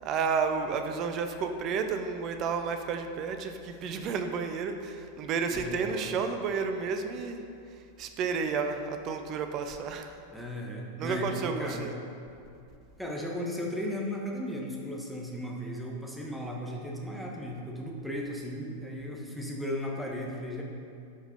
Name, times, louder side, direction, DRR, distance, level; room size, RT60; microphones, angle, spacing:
voice 1, 0.0-7.4 8.0-10.1 11.0-11.9, right 5 dB, 35° right, 7 dB, 0.7 m, -31 dB
voice 2, 5.5-6.1 10.3-11.9 13.0-20.6, equal, ahead, -2 dB, 1.5 m, -36 dB
12.0 x 5.1 x 5.3 m, 2.5 s
figure-of-eight pair, 90°, 0 cm